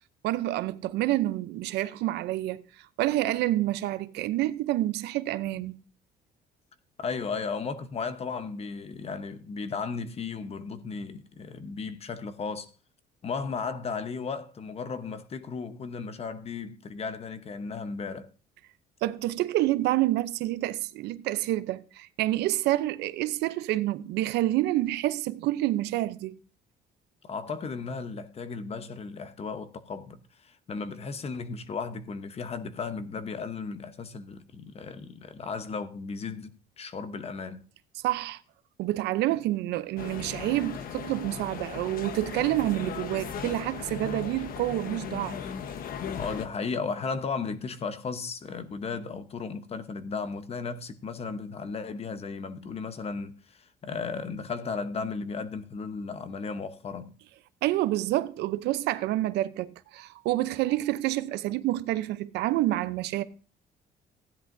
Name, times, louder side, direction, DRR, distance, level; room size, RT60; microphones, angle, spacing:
voice 1, 0.2-2.6 3.0-5.8 19.0-26.4 38.0-38.4 38.8-45.4 57.6-63.2, right 15 dB, 85° right, 0.7 m, -28 dB
voice 2, 7.0-12.7 13.2-18.3 27.2-37.6 46.1-57.1, left 5 dB, 35° left, 1.0 m, -35 dB
sound 1, 40.0-46.4, left 7 dB, 60° left, 1.1 m, -37 dB
15.5 x 10.5 x 2.7 m
cardioid pair, 110°, 17 cm